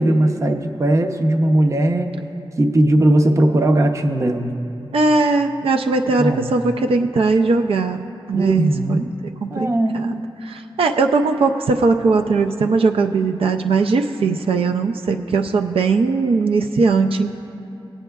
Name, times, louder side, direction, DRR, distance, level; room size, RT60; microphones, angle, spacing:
voice 1, 0.0-2.2 2.6-4.6 6.2-6.5 8.3-9.1 9.5-10.1, right 1 dB, 35° right, 5 dB, 0.6 m, -18 dB
voice 2, 4.9-8.0 8.3-9.0 9.4-9.7 9.9-10.2 10.5-17.3, right 4 dB, 80° right, 4 dB, 0.4 m, -19 dB
20.0 x 8.9 x 2.3 m, 2.8 s
wide cardioid pair, 135°, 9 cm